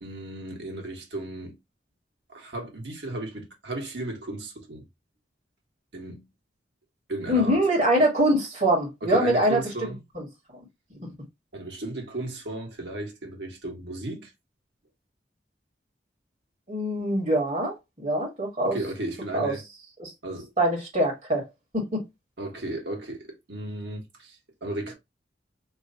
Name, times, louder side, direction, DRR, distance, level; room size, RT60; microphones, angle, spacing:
voice 1, 0.0-1.6 2.3-4.8 5.9-6.3 7.1-7.6 9.0-10.0 11.5-14.3 18.6-19.6 20.2-20.5 22.4-24.9, right 2 dB, 80° right, 1.5 m, -35 dB
voice 2, 7.3-9.6 10.2-10.3 16.7-18.8 19.3-19.5 20.0-20.1 20.6-21.4 21.7-22.0, right 1 dB, 40° right, 1.8 m, -23 dB
3.1 x 2.6 x 4.0 m
head